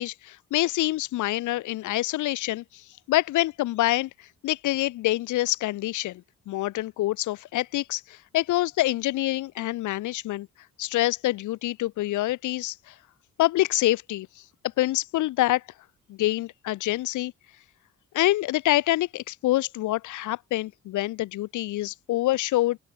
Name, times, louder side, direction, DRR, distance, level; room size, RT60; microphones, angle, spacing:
voice 1, 0.0-10.5 10.8-12.9 13.4-14.3 14.8-15.6 16.1-17.3 18.1-22.8, left 16 dB, 80° left, 0.9 m, -26 dB
open air
cardioid pair, 90°, 30 cm